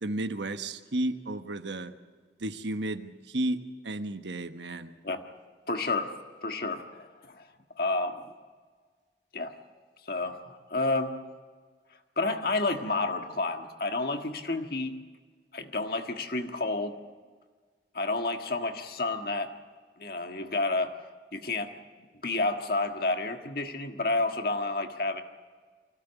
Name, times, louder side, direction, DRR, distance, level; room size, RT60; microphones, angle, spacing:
voice 1, 0.0-1.9 2.4-4.9, right 1 dB, 85° right, 9 dB, 1.2 m, -33 dB
voice 2, 5.7-6.1 6.4-7.4 7.8-8.3 9.3-9.5 10.1-11.2 12.2-15.0 15.5-17.0 17.9-19.5 20.0-20.9 21.3-21.7 22.2-25.2, left 2 dB, 55° left, 5 dB, 1.6 m, -30 dB
24.5 x 16.5 x 8.2 m, 1.5 s
head